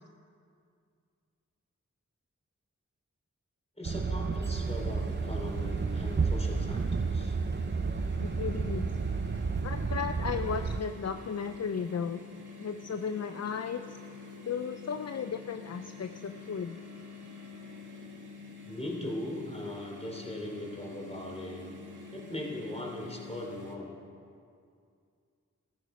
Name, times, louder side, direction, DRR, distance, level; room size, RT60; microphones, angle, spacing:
voice 1, 3.8-7.3 18.6-21.7 22.1-23.9, left 1 dB, 20° left, -1 dB, 3.4 m, -39 dB
sound 1, 3.8-10.8, right 4 dB, 35° right, 0.5 m, -31 dB
sound 2, 4.5-23.8, left 4 dB, 75° right, 1.8 m, -47 dB
voice 2, 8.2-8.9 9.6-12.2 12.6-13.8 14.4-16.8, left 6 dB, 55° left, 8 dB, 0.5 m, -35 dB
15.0 x 14.0 x 5.2 m, 2.3 s
wide cardioid pair, 55°, 31 cm